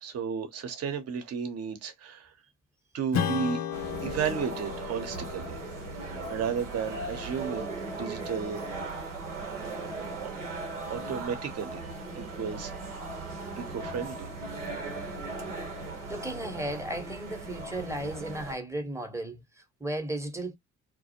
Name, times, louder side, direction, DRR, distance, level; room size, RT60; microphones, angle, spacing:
voice 1, 0.0-2.3 2.9-3.6 4.0-5.6 6.0-8.7 10.9-11.8 12.1-12.7 13.3-14.3, right 7 dB, 45° right, 0.8 m, -33 dB
Strum, 3.1-8.1, left 8 dB, 55° left, 0.6 m, -36 dB
sound 1, 3.7-18.5, right 3 dB, 90° right, 0.8 m, -38 dB
voice 2, 16.1-20.6, right 1 dB, 10° right, 0.8 m, -35 dB
2.4 x 2.1 x 2.7 m
figure-of-eight pair, 45°, 35 cm